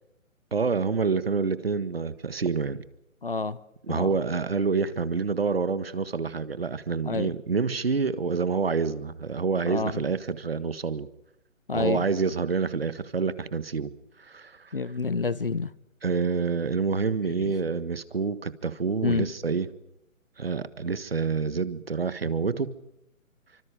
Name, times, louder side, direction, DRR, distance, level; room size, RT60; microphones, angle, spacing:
voice 1, 0.5-2.8 3.8-11.1 11.7-13.9 14.2-14.8 16.0-19.7 20.4-22.8, right 5 dB, 45° right, 14 dB, 1.6 m, -27 dB
voice 2, 3.2-3.6 3.9-4.1 7.0-7.3 9.6-9.9 11.7-12.1 14.7-15.7 17.4-17.5 19.0-19.3, left 4 dB, 40° left, 18 dB, 1.0 m, -28 dB
30.0 x 25.5 x 4.9 m, 0.82 s
hypercardioid pair, 180°, 41 cm